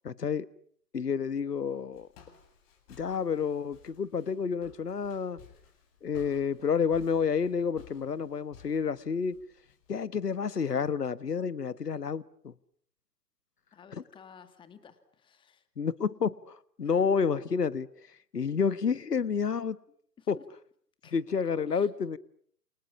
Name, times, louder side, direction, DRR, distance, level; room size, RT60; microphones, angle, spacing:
voice 1, 0.0-0.5 0.9-2.1 2.9-5.4 6.0-9.4 9.9-12.5 15.8-17.9 18.3-19.8 20.3-20.4 21.1-22.2, left 6 dB, 70° left, 18 dB, 1.5 m, -29 dB
Walk footsteps, 1.3-9.9, left 6 dB, 35° left, 7.9 m, -57 dB
voice 2, 13.7-15.7 16.8-17.1 20.2-20.5 21.0-21.1 21.7-21.9, left 7 dB, 10° left, 11 dB, 1.8 m, -54 dB
28.5 x 28.0 x 7.2 m, 0.63 s
figure-of-eight pair, 125°, 48 cm